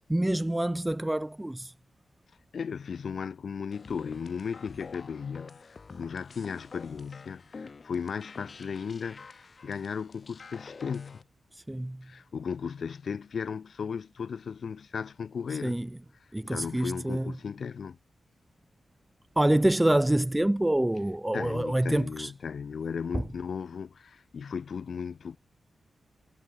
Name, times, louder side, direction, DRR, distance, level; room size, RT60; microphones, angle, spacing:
voice 1, 0.0-1.7 11.5-12.1 15.6-15.9 16.3-17.3 19.4-22.3 23.1-23.2, right 1 dB, 10° right, 0.3 m, -26 dB
voice 2, 2.5-11.2 12.0-15.8 16.2-18.0 21.3-25.4, left 6 dB, 65° left, 0.5 m, -36 dB
sound 1, 3.7-11.2, left 4 dB, 45° left, 2.3 m, -48 dB
wide cardioid pair, 105°, 0 cm